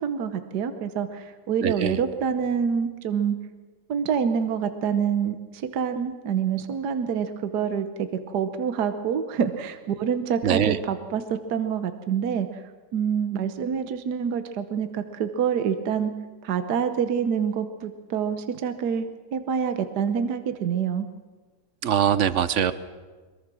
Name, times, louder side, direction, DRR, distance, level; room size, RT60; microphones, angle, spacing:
voice 1, 0.0-3.4 3.9-12.6 12.9-16.1 16.4-21.1, right 7 dB, 70° right, 9 dB, 1.6 m, -26 dB
voice 2, 1.6-2.0 10.4-10.8 21.8-22.7, right 9 dB, 55° right, 14 dB, 1.0 m, -22 dB
23.0 x 22.0 x 6.2 m, 1.4 s
omnidirectional pair, 1.9 m